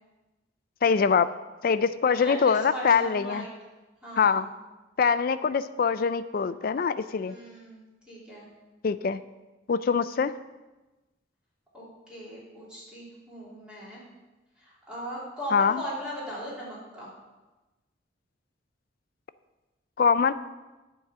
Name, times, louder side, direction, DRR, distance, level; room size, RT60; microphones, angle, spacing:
voice 1, 0.8-1.3 1.6-3.5 4.2-4.5 5.0-7.4 8.8-9.2 9.7-10.3 15.5-15.8 20.0-20.3, left 6 dB, 50° left, 14 dB, 0.4 m, -23 dB
voice 2, 2.1-3.5 4.0-4.5 7.2-8.5 11.7-14.0 14.6-17.1, equal, 5° right, -8 dB, 3.0 m, -39 dB
9.0 x 4.8 x 6.8 m, 1.1 s
head